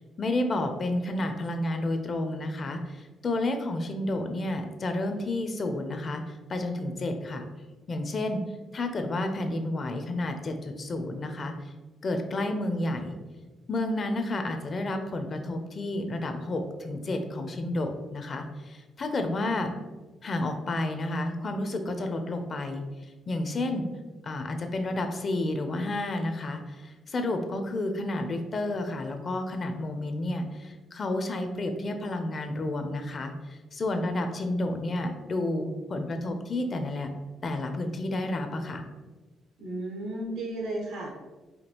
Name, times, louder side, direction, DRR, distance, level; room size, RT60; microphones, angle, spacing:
voice 1, 0.2-6.2 6.5-7.5 7.9-8.4 8.7-11.5 12.0-13.2 13.7-19.7 20.2-22.8 23.3-23.9 24.2-37.1 37.4-38.8, left 2 dB, 45° left, 6 dB, 0.5 m, -30 dB
voice 2, 39.6-41.1, right 1 dB, 85° right, -1 dB, 1.1 m, -34 dB
5.0 x 2.3 x 2.9 m, 1.2 s
cardioid pair, 90°, 0 cm